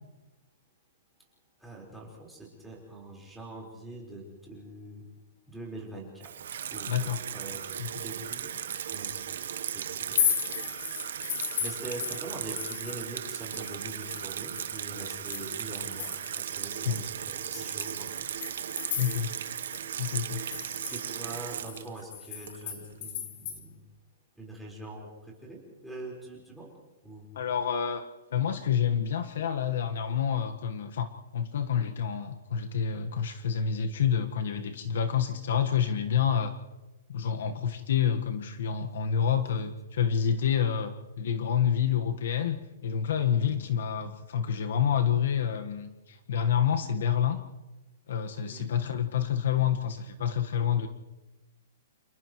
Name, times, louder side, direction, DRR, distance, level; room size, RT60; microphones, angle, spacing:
voice 1, 1.6-5.1 5.5-6.3 6.7-7.6 8.0-8.6 8.9-9.4 9.7-10.5 11.3-18.1 20.3-23.8 24.4-26.7 27.0-27.3 43.4-43.7 48.5-48.7, right 2 dB, ahead, -5 dB, 4.5 m, -44 dB
Water tap faucet / Sink (filling or washing), 6.2-22.9, right 9 dB, 65° right, 1.0 m, -36 dB
voice 2, 6.9-7.2 7.8-7.9 16.8-17.1 19.0-19.3 20.0-20.4 27.3-28.0 28.3-36.5 37.1-47.4 48.1-50.9, left 8 dB, 60° left, 6 dB, 1.4 m, -28 dB
sound 1, 10.0-13.0 13.3-16.5 16.9-17.0 17.5-19.5 19.7-19.8 20.2-23.6, left 9 dB, 40° left, 3.0 m, -35 dB
29.5 x 29.0 x 3.1 m, 1.1 s
hypercardioid pair, 175°, 0 cm